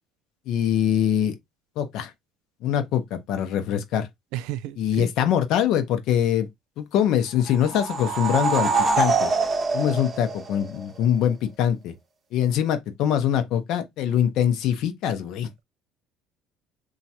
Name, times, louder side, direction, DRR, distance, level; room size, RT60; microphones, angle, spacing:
voice 1, 0.5-1.4 1.8-2.1 2.6-4.1 4.8-6.5 6.8-9.3 9.7-11.9 12.3-15.6, left 9 dB, 70° left, 0.6 m, -23 dB
voice 2, 4.3-5.1, right 13 dB, 80° right, 0.3 m, -32 dB
sound 1, 7.5-11.0, right 4 dB, 35° right, 0.6 m, -24 dB
3.0 x 2.4 x 2.8 m
supercardioid pair, 100°, 0 cm